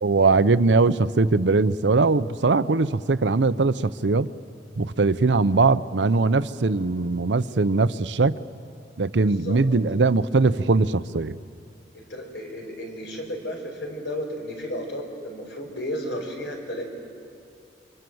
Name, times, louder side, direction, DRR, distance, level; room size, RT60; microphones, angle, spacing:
voice 1, 0.0-4.3 4.8-8.4 9.0-11.4, right 3 dB, 80° right, 15 dB, 0.7 m, -21 dB
voice 2, 11.9-16.8, equal, 80° left, 2 dB, 5.4 m, -33 dB
29.5 x 25.0 x 7.9 m, 2.5 s
head